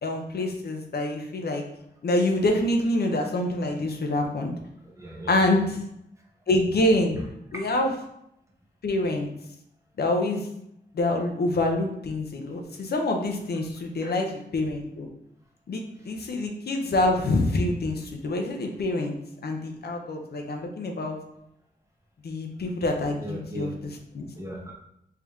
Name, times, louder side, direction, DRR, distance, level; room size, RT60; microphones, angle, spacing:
voice 1, 0.0-1.6 2.0-4.5 5.3-5.8 6.5-7.2 7.5-7.9 8.8-9.3 10.0-10.5 10.9-15.1 15.7-19.2 19.4-21.2 22.2-24.3, left 1 dB, 65° left, 3 dB, 0.6 m, -26 dB
voice 2, 5.0-5.7 7.5-7.7 14.0-14.2 23.1-23.8 24.3-24.7, right 1 dB, 15° right, -2 dB, 0.8 m, -38 dB
3.5 x 2.8 x 3.5 m, 0.77 s
wide cardioid pair, 105°, 18 cm